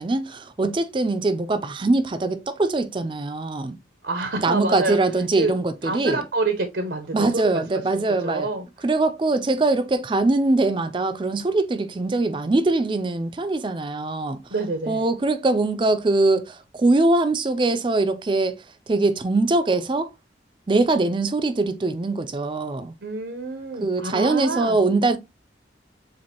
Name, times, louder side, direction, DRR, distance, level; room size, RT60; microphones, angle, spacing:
voice 1, 0.0-3.8 4.4-6.2 7.1-8.5 8.8-14.4 14.9-20.1 20.7-22.9 23.8-25.2, right 2 dB, 25° right, 0.4 m, -22 dB
voice 2, 4.0-5.0 5.4-5.5 5.8-8.6 14.5-15.0 23.0-24.8, right 3 dB, 80° right, 0.8 m, -27 dB
7.3 x 2.5 x 2.8 m
head